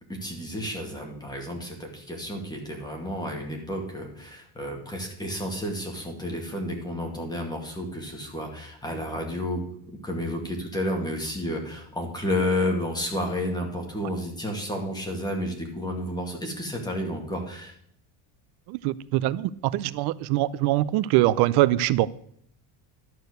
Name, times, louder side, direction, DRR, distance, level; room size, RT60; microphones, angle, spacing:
voice 1, 0.1-17.7, left 1 dB, 10° left, 1 dB, 2.2 m, -31 dB
voice 2, 18.7-22.1, right 15 dB, 60° right, 17 dB, 0.6 m, -23 dB
11.5 x 4.5 x 7.9 m, 0.67 s
cardioid pair, 150°, 45 cm